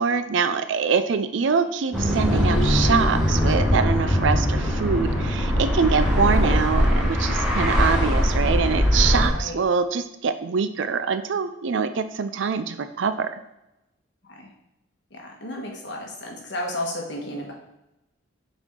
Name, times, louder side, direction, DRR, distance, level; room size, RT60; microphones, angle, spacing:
voice 1, 0.0-13.3, right 5 dB, 65° right, 10 dB, 0.4 m, -24 dB
sound 1, 1.9-9.3, equal, 5° right, 1.4 m, -21 dB
voice 2, 15.1-17.5, left 1 dB, 60° left, 0 dB, 1.4 m, -33 dB
7.1 x 4.3 x 3.7 m, 0.91 s
head